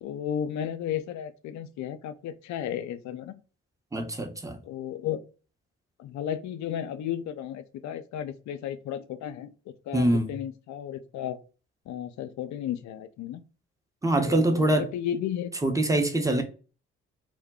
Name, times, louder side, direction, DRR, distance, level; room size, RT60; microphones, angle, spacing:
voice 1, 0.0-3.4 4.6-5.2 6.0-9.5 9.9-11.4 11.9-13.4 14.2-15.5 16.3-16.4, left 10 dB, 65° left, 0.5 m, -34 dB
voice 2, 3.9-4.6 9.9-10.3 14.0-14.9 15.6-16.4, right 1 dB, 10° right, 0.8 m, -24 dB
2.2 x 2.1 x 3.5 m
hypercardioid pair, 45°, 31 cm